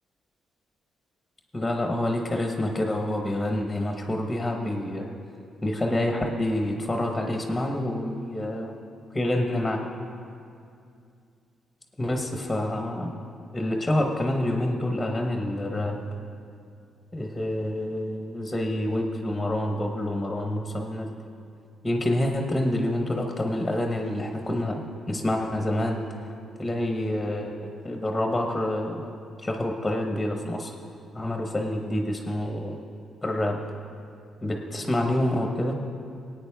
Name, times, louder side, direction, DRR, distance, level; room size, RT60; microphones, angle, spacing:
voice 1, 1.5-5.1 5.6-8.7 9.1-9.9 12.0-13.1 13.5-16.0 17.1-21.2 21.8-26.3 26.6-30.7 31.1-32.8 33.2-33.6 34.4-35.8, left 1 dB, 10° left, 2 dB, 1.0 m, -27 dB
18.5 x 9.2 x 3.5 m, 2.4 s
cardioid pair, 90°, 0 cm